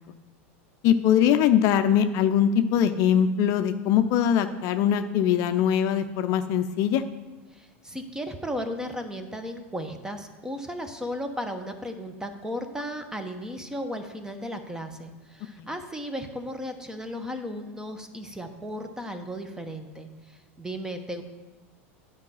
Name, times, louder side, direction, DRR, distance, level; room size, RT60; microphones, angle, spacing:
voice 1, 0.8-7.0 15.6-15.7, left 9 dB, 50° left, 9 dB, 0.5 m, -22 dB
voice 2, 7.5-21.2, equal, 10° right, 7 dB, 1.0 m, -35 dB
9.7 x 4.8 x 5.6 m, 1.2 s
hypercardioid pair, 95°, 7 cm